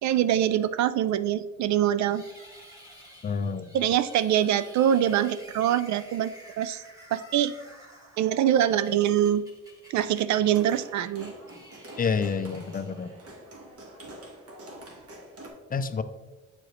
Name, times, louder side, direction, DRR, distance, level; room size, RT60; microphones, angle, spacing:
voice 1, 0.0-2.2 3.7-6.8 7.1-7.5 8.2-9.4 9.9-11.3, right 10 dB, 70° right, 14 dB, 0.4 m, -24 dB
sound 1, 2.0-13.4, equal, 10° right, 1.8 m, -51 dB
voice 2, 3.2-3.7 12.0-13.1 15.7-16.0, left 5 dB, 30° left, 11 dB, 0.4 m, -28 dB
sound 2, 10.5-15.5, right 1 dB, 50° right, 1.4 m, -46 dB
7.7 x 4.7 x 3.1 m, 1.1 s
cardioid pair, 90°, 30 cm